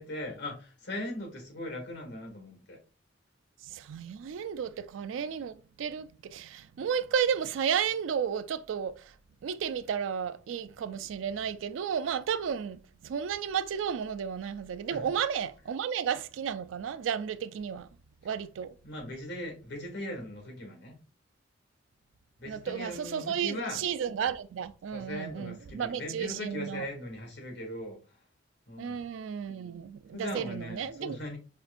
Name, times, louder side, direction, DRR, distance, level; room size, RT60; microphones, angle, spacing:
voice 1, 0.0-2.8 14.9-15.0 18.8-20.9 22.4-23.8 24.9-28.0 28.7-29.0 30.1-31.4, left 1 dB, 65° left, 1.6 m, -39 dB
voice 2, 3.6-9.0 9.4-17.9 18.2-18.7 22.4-26.9 28.8-31.2, right 7 dB, 90° right, 0.3 m, -33 dB
5.5 x 2.5 x 2.5 m
head